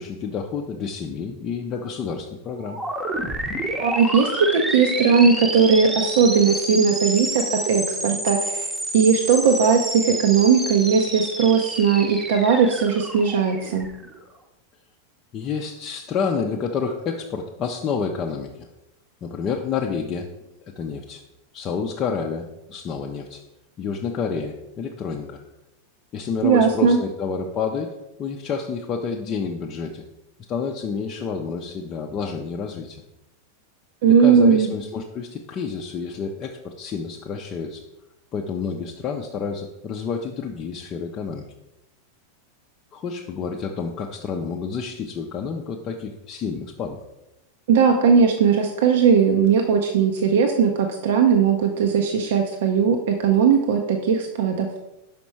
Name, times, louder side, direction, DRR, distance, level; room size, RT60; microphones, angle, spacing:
voice 1, 0.0-2.8 15.3-18.7 19.2-20.3 20.6-21.2 21.5-23.4 23.8-25.4 26.1-30.0 30.5-33.0 34.1-37.8 38.3-41.4 42.9-47.0, left 5 dB, 30° left, 1 dB, 0.6 m, -29 dB
sound 1, 2.6-14.2, right 1 dB, 10° right, 0.9 m, -29 dB
voice 2, 3.8-8.7 8.9-13.9 26.4-27.0 34.0-34.7 47.7-54.7, right 6 dB, 55° right, 3 dB, 0.6 m, -18 dB
6.1 x 5.1 x 4.5 m, 0.94 s
figure-of-eight pair, 90°, 0 cm